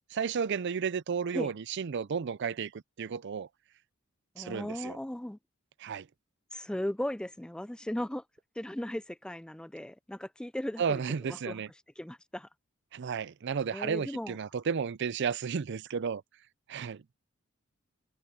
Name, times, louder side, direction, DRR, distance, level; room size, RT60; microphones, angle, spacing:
voice 1, 0.1-3.5 4.4-5.0 5.8-6.1 10.8-11.7 12.9-16.2 16.7-17.0, right 6 dB, 55° right, 0.5 m, -33 dB
voice 2, 4.4-5.4 6.5-8.2 8.6-11.6 12.0-12.5 13.7-14.4, left 1 dB, 5° left, 0.3 m, -37 dB
head